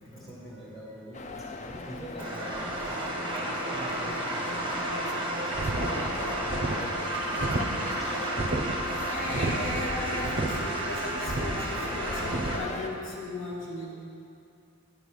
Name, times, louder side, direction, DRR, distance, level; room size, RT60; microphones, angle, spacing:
voice 1, 0.1-1.3 1.7-3.1 3.6-5.6, right 1 dB, ahead, -6 dB, 1.1 m, -46 dB
sound 1, 1.1-12.9, left 3 dB, 35° left, 0.4 m, -39 dB
sound 2, 2.2-12.6, right 1 dB, 25° right, 1.1 m, -32 dB
sound 3, 5.5-12.6, right 2 dB, 40° right, 0.6 m, -33 dB
voice 2, 9.1-13.9, left 2 dB, 65° left, -6 dB, 2.1 m, -36 dB
9.4 x 5.3 x 6.3 m, 2.6 s
head